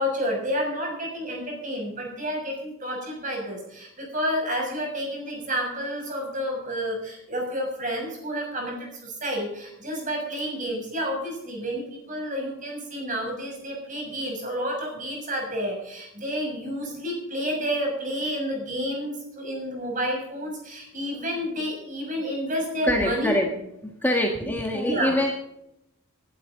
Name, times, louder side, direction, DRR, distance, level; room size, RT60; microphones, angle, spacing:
voice 1, 0.0-23.3 24.4-24.5 24.8-25.2, equal, 35° right, 0 dB, 6.6 m, -30 dB
voice 2, 22.8-23.5 23.8-25.3, left 1 dB, 10° left, 0 dB, 1.5 m, -24 dB
20.0 x 12.0 x 3.9 m, 0.81 s
head